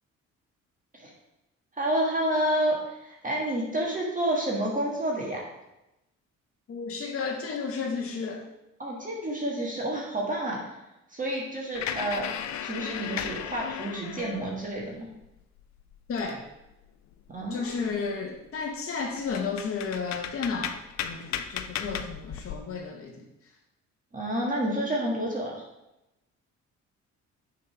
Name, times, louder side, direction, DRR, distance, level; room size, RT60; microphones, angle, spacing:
voice 1, 1.7-5.4 8.8-10.7 11.1-12.3 12.6-15.0 17.3-17.7 21.8-22.0 24.1-25.5, right 1 dB, 25° right, -3 dB, 1.6 m, -29 dB
voice 2, 6.7-8.4 16.1-16.4 17.5-23.2, left 5 dB, 45° left, 1 dB, 0.9 m, -33 dB
sound 1, 11.7-14.8 15.2-16.7 17.1-17.2 17.6-18.1 18.7-18.8 19.2-22.6, left 9 dB, 65° left, 0.6 m, -36 dB
6.5 x 4.0 x 5.8 m, 0.93 s
cardioid pair, 90°, 30 cm